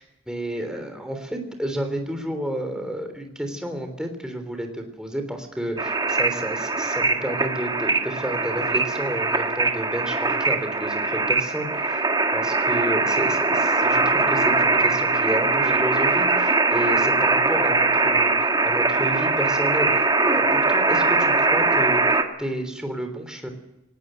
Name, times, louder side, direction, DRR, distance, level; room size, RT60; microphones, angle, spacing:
voice 1, 0.0-12.1 12.3-23.5, right 1 dB, 5° right, 5 dB, 3.4 m, -31 dB
sound 1, 5.8-22.2, right 3 dB, 20° right, 1.6 m, -21 dB
18.5 x 18.5 x 8.0 m, 0.92 s
head